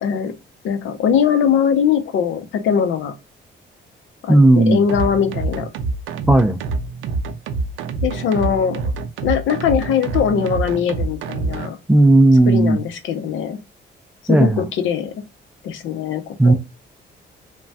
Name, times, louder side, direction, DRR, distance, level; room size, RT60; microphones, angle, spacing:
voice 1, 0.0-0.3 0.6-3.1 4.2-5.7 8.0-8.9 9.2-11.8 12.5-13.6 14.2-15.1 15.6-16.5, left 7 dB, 75° left, 0.6 m, -21 dB
voice 2, 4.3-4.8 6.3-6.6 11.9-12.8 14.3-14.6 16.4-16.5, right 2 dB, 5° right, 0.3 m, -13 dB
sound 1, 4.9-11.7, right 3 dB, 85° right, 0.5 m, -26 dB
3.2 x 2.2 x 2.5 m
cardioid pair, 90°, 20 cm